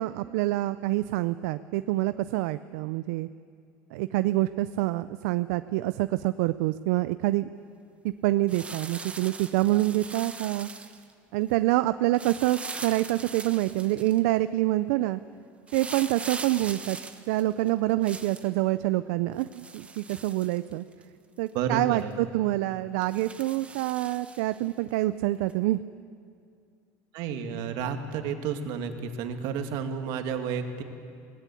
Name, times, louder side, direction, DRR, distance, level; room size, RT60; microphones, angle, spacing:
voice 1, 0.0-3.3 3.9-7.5 8.2-10.7 11.3-15.2 15.7-17.0 17.3-20.8 21.4-25.8, right 17 dB, 85° right, 13 dB, 0.5 m, -26 dB
sound 1, 8.5-11.1 12.1-14.2 15.7-18.5 19.4-21.0 21.5-21.6 22.0-22.1 23.0-24.6 25.5-25.6, right 4 dB, 15° right, 1.1 m, -41 dB
voice 2, 21.5-22.1 27.1-30.8, right 6 dB, 65° right, 6 dB, 2.0 m, -31 dB
21.0 x 18.0 x 8.4 m, 2.3 s
cardioid pair, 135°, 8 cm